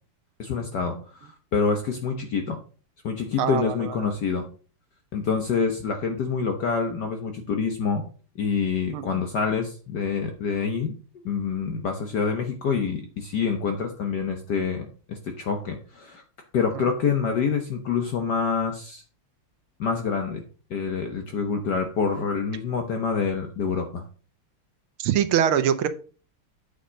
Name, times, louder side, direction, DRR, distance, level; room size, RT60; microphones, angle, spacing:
voice 1, 0.4-2.6 3.0-4.5 5.1-8.0 8.3-10.9 11.2-16.2 16.5-19.0 19.8-20.4 20.7-24.0, left 5 dB, 55° left, 5 dB, 1.4 m, -26 dB
voice 2, 3.4-4.1 8.9-9.2 16.7-16.8 25.0-25.9, right 9 dB, 75° right, 11 dB, 1.6 m, -24 dB
8.4 x 5.3 x 5.2 m, 0.38 s
omnidirectional pair, 2.4 m